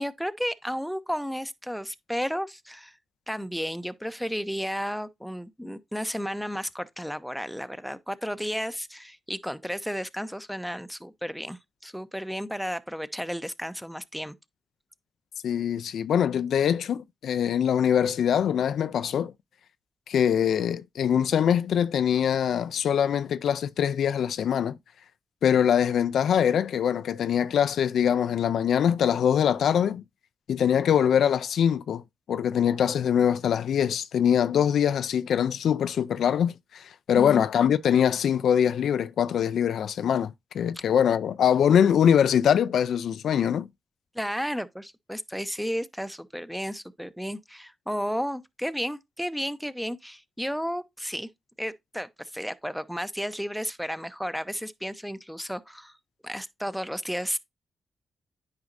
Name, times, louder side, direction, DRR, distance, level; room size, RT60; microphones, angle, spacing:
voice 1, 0.0-3.0 3.3-14.3 37.1-37.4 44.1-51.3 51.6-56.0 56.2-57.4, equal, ahead, 0.7 m, -33 dB
voice 2, 15.4-19.3 20.1-24.8 25.4-30.0 30.5-32.0 32.3-43.7, left 8 dB, 80° left, 0.3 m, -23 dB
9.5 x 4.9 x 2.5 m
cardioid pair, 60°, 0 cm